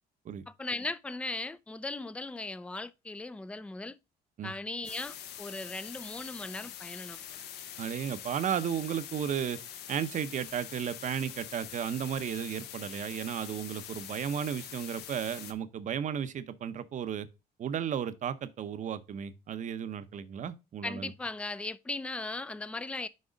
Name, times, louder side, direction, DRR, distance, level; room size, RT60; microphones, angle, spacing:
voice 1, 0.5-4.0 4.4-7.2 20.8-23.1, left 3 dB, 5° left, 0.4 m, -38 dB
sound 1, 4.8-15.5, left 9 dB, 75° left, 1.0 m, -44 dB
voice 2, 7.8-9.6 9.9-17.3 17.6-21.1, right 8 dB, 50° right, 0.7 m, -34 dB
6.4 x 4.8 x 5.1 m
cardioid pair, 110°, 17 cm